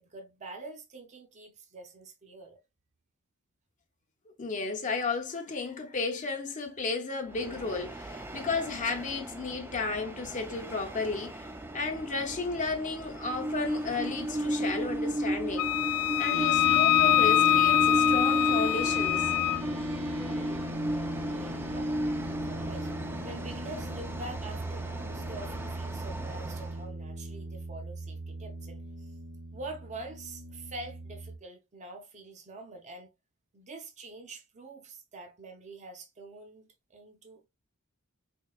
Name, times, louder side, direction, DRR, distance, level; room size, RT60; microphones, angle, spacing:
voice 1, 0.0-2.6 21.3-21.9 22.2-22.9 23.2-29.1 29.5-33.1 33.5-37.5, right 2 dB, 35° right, 0.7 m, -45 dB
voice 2, 4.4-11.5 11.7-15.7 16.2-19.3, left 4 dB, 35° left, 0.6 m, -33 dB
Train, 7.3-26.8, right 1 dB, 10° right, 0.3 m, -34 dB
Wind instrument woodwind instrument, 15.6-19.6, left 13 dB, 80° left, 0.3 m, -24 dB
sound 1, 16.3-31.4, equal, 85° right, 1.4 m, -39 dB
4.5 x 2.8 x 2.3 m
head